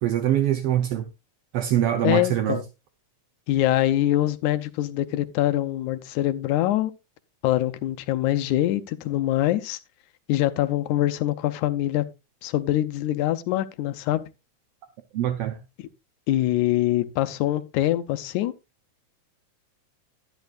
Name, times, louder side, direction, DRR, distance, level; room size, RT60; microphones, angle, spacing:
voice 1, 0.0-1.0 1.5-2.6 15.1-15.6, right 11 dB, 70° right, 1.5 m, -23 dB
voice 2, 2.0-2.6 3.5-6.9 7.4-9.8 10.3-12.0 12.4-14.3 16.3-18.5, left 14 dB, 85° left, 2.1 m, -24 dB
11.0 x 10.5 x 2.5 m
omnidirectional pair, 3.4 m